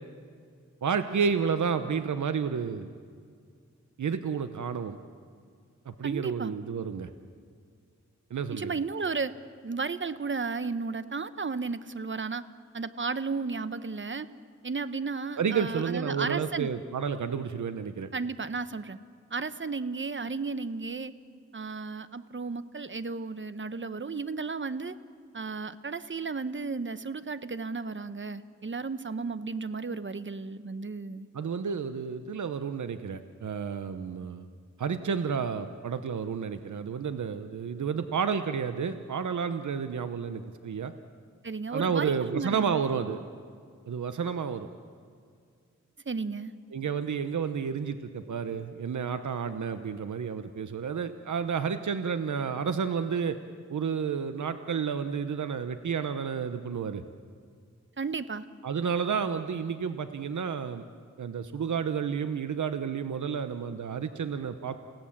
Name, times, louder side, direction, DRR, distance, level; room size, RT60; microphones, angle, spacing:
voice 1, 0.8-2.9 4.0-5.0 5.9-7.1 8.3-8.8 15.4-18.1 31.3-34.5 34.8-40.9 41.7-43.2 43.9-44.7 46.7-53.4 53.7-57.0 58.6-60.8 61.2-64.8, right 6 dB, 80° right, 9 dB, 0.9 m, -31 dB
voice 2, 6.0-6.5 8.5-9.3 9.6-12.4 12.7-14.3 14.6-16.7 18.1-19.0 19.3-21.1 21.5-24.9 25.3-31.3 41.4-42.8 46.0-46.5 58.0-58.4, right 4 dB, 40° right, 13 dB, 1.0 m, -34 dB
29.0 x 17.0 x 7.4 m, 2.1 s
cardioid pair, 45°, 29 cm